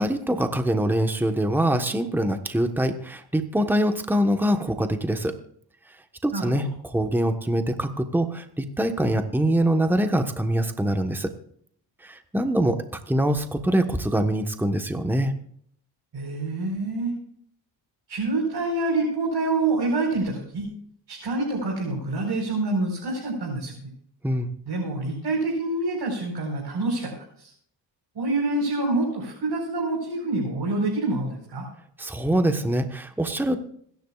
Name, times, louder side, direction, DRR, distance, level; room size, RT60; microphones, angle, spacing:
voice 1, 0.0-5.3 6.2-11.3 12.0-15.3 24.2-24.5 32.0-33.6, right 1 dB, 5° right, 7 dB, 1.3 m, -24 dB
voice 2, 6.3-6.6 16.1-17.1 18.1-20.7 21.1-23.7 24.6-27.5 28.1-31.6, right 2 dB, 55° right, -2 dB, 5.0 m, -26 dB
26.5 x 10.5 x 2.5 m, 0.64 s
cardioid pair, 85°, 47 cm